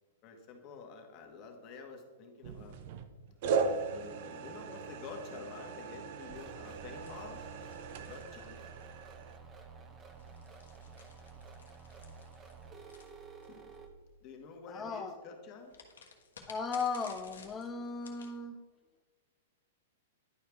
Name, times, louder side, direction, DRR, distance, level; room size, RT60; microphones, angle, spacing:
voice 1, 0.2-2.7 3.5-7.5 8.0-8.6 13.5-13.8 14.2-15.8, left 4 dB, 40° left, 3 dB, 1.4 m, -49 dB
sound 1, 2.4-3.1 3.4-9.4, right 5 dB, 55° right, 0.6 m, -38 dB
sound 2, 6.3-13.9, right 5 dB, 20° right, 0.8 m, -52 dB
sound 3, 7.0-9.0 10.0-13.8 15.7-18.4, left 5 dB, 90° left, 1.3 m, -56 dB
voice 2, 14.7-15.2 16.5-18.6, left 4 dB, 20° left, 6 dB, 0.4 m, -36 dB
11.0 x 4.6 x 3.5 m, 1.4 s
hypercardioid pair, 135°, 0 cm